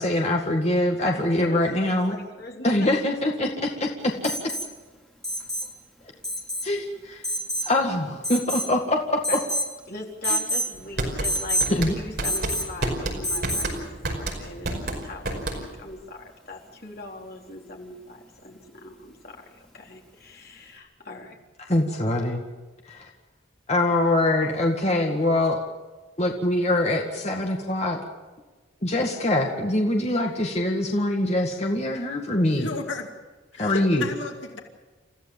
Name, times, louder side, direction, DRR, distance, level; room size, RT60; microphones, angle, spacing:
voice 1, 0.0-2.2 2.6-4.5 6.6-7.2 7.6-9.4 10.3-10.4 11.7-12.0 21.7-22.4 22.9-23.1 23.7-25.6 26.2-28.0 28.8-32.7 33.6-34.1, left 1 dB, 35° left, 1 dB, 2.0 m, -24 dB
voice 2, 1.0-2.9 9.3-9.4 9.9-21.4, left 2 dB, 50° left, 0 dB, 3.9 m, -40 dB
Alarm, 4.2-4.7 5.2-5.7 6.2-6.7 7.2-7.7 8.2-8.8 9.2-9.7 10.2-10.7 11.2-11.7 12.2-12.7 13.2-13.7 15.5-15.6, equal, 5° left, 3.1 m, -28 dB
sound 1, 10.7-15.9, right 2 dB, 55° right, 5.3 m, -29 dB
voice 3, 32.6-33.1 33.5-34.6, left 3 dB, 75° left, 3 dB, 2.4 m, -33 dB
29.5 x 15.0 x 7.3 m, 1.3 s
head